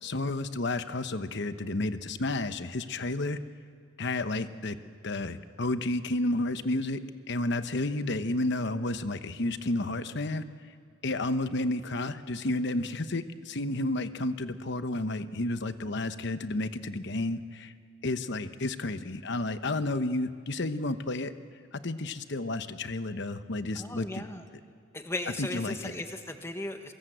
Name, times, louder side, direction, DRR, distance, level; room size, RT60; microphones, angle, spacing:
voice 1, 0.0-3.4 4.0-4.8 5.0-10.4 11.0-17.7 18.0-21.3 21.7-24.2 25.4-25.9, left 2 dB, 60° left, 11 dB, 1.0 m, -31 dB
voice 2, 23.7-24.4 24.9-26.9, left 2 dB, 15° left, 6 dB, 1.4 m, -37 dB
24.0 x 22.0 x 8.0 m, 2.1 s
head